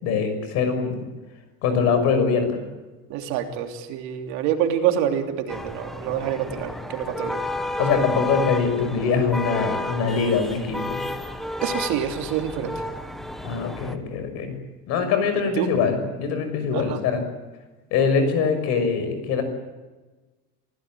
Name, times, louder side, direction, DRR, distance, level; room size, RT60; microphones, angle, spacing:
voice 1, 0.0-1.0 1.6-2.6 7.8-11.0 13.4-14.5 14.9-17.2 17.9-19.4, left 5 dB, 50° left, 8 dB, 6.2 m, -23 dB
voice 2, 3.1-7.4 11.6-12.7 15.6-15.7 16.7-17.0, right 9 dB, 60° right, 5 dB, 3.2 m, -26 dB
sound 1, 5.5-13.9, left 1 dB, ahead, 1.1 m, -31 dB
26.5 x 17.5 x 9.2 m, 1.2 s
cardioid pair, 180°, 33 cm